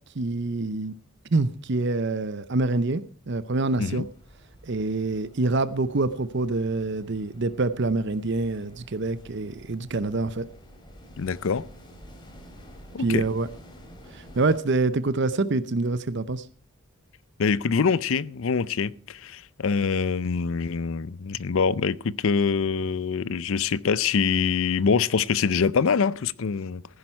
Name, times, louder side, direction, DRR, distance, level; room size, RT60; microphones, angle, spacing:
voice 1, 0.2-0.9 1.3-4.0 4.7-10.5 13.0-13.5 14.1-16.4, right 3 dB, 50° right, 0.7 m, -26 dB
sound 1, 3.7-14.6, equal, 20° left, 2.6 m, -49 dB
voice 2, 11.2-11.6 12.9-13.3 17.4-26.8, left 5 dB, 65° left, 0.5 m, -24 dB
15.5 x 10.5 x 4.4 m
head